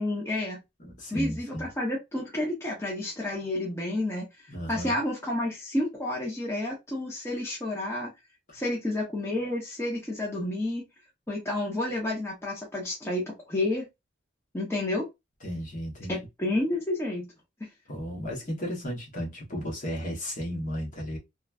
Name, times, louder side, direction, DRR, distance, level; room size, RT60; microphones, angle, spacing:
voice 1, 0.0-0.6 1.1-4.3 4.7-8.1 8.5-10.8 11.3-13.8 14.5-15.1 16.1-17.3, left 1 dB, 15° left, 0.7 m, -30 dB
voice 2, 0.8-1.7 4.5-4.9 15.4-16.2 17.9-21.2, equal, 40° left, 1.0 m, -34 dB
3.0 x 2.2 x 2.3 m
head